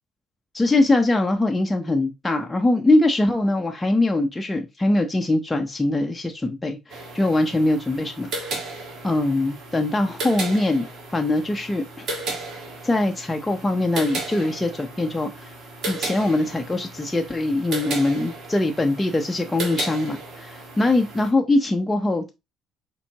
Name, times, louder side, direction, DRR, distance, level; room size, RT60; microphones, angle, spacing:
voice 1, 0.5-8.6 9.0-12.1 12.8-15.5 15.9-22.3, left 2 dB, 15° left, 0.7 m, -22 dB
sound 1, 6.9-21.3, right 2 dB, 60° right, 1.5 m, -35 dB
4.5 x 4.2 x 2.8 m
supercardioid pair, 75°, 0 cm